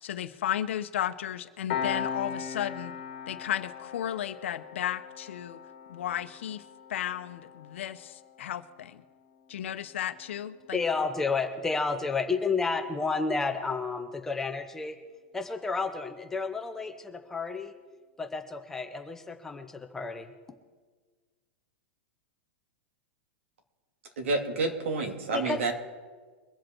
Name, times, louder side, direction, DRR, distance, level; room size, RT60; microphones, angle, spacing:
voice 1, 0.0-2.9 3.3-5.6 5.9-6.6 6.9-9.0 9.5-10.8, left 11 dB, 75° left, 11 dB, 0.9 m, -34 dB
Piano, 1.7-12.8, left 7 dB, 40° left, 1.8 m, -40 dB
voice 2, 10.7-15.0 15.3-17.7 18.2-20.3 25.3-25.6, left 4 dB, 5° left, 6 dB, 0.6 m, -31 dB
voice 3, 24.2-25.7, right 3 dB, 85° right, 4 dB, 2.6 m, -29 dB
23.5 x 7.9 x 4.5 m, 1.5 s
supercardioid pair, 180°, 7 cm